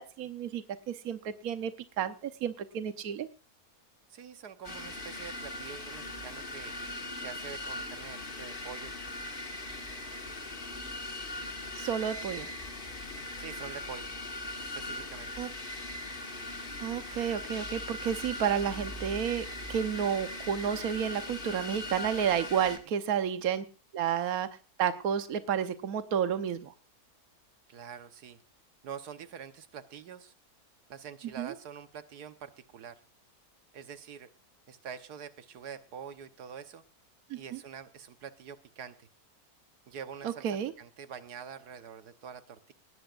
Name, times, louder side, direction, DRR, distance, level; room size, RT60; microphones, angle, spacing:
voice 1, 0.0-1.7 2.0-3.3 11.8-12.5 15.4-15.5 16.8-23.6 23.9-24.5 24.8-26.7 31.4-31.5 37.3-37.6 40.2-40.7, right 8 dB, 70° right, 9 dB, 1.4 m, -31 dB
voice 2, 4.1-6.7 7.2-8.9 13.4-14.1 14.7-15.6 27.7-28.4 28.8-30.3 30.9-33.0 33.7-34.3 34.7-36.8 37.3-39.1 39.9-42.7, right 7 dB, 85° right, 10 dB, 1.6 m, -45 dB
sound 1, 4.6-22.8, left 1 dB, 35° left, 1.9 m, -40 dB
19.5 x 17.5 x 2.5 m, 0.33 s
omnidirectional pair, 1.6 m